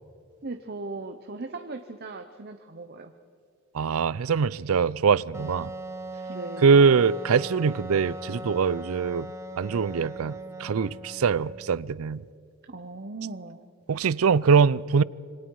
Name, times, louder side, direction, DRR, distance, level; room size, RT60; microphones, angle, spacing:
voice 1, 0.4-3.1 6.3-6.7 12.7-13.6, right 3 dB, 50° right, 0.9 m, -38 dB
voice 2, 3.7-5.7 6.6-9.3 9.6-12.2 13.9-15.0, right 5 dB, 90° right, 0.5 m, -22 dB
Wind instrument woodwind instrument, 5.3-11.8, right 1 dB, 15° right, 1.1 m, -39 dB
26.5 x 24.0 x 4.8 m
head